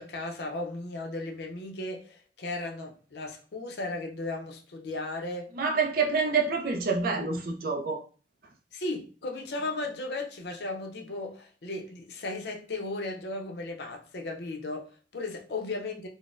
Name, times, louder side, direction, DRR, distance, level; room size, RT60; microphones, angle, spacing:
voice 1, 0.0-5.5 8.7-16.1, left 2 dB, 65° left, 0.6 m, -36 dB
voice 2, 5.6-8.0, right 4 dB, 55° right, 0.4 m, -27 dB
3.9 x 2.1 x 2.4 m
head